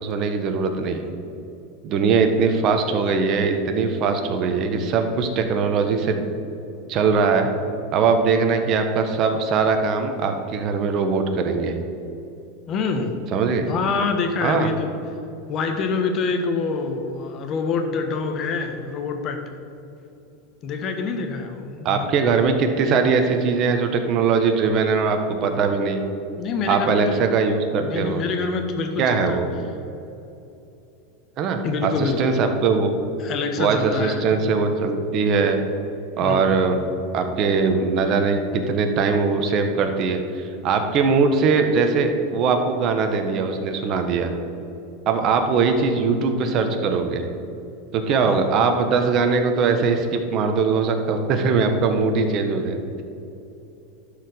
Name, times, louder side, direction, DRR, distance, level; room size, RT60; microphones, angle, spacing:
voice 1, 0.0-1.0 1.8-6.3 6.9-7.5 7.9-11.7 13.3-13.7 14.4-14.7 21.8-26.0 26.7-28.2 29.0-29.5 31.4-32.9 33.6-35.6 36.2-36.8 37.1-44.3 45.1-47.2 47.9-53.0, right 5 dB, 45° right, 6 dB, 1.3 m, -21 dB
voice 2, 12.7-13.1 13.7-15.0 15.5-19.4 20.6-22.1 26.4-27.1 27.8-29.4 31.6-32.4 33.2-34.3 36.2-36.6 48.3-48.4, left 4 dB, 40° left, 5 dB, 1.4 m, -26 dB
11.5 x 5.0 x 6.9 m, 2.8 s
supercardioid pair, 115°, 0 cm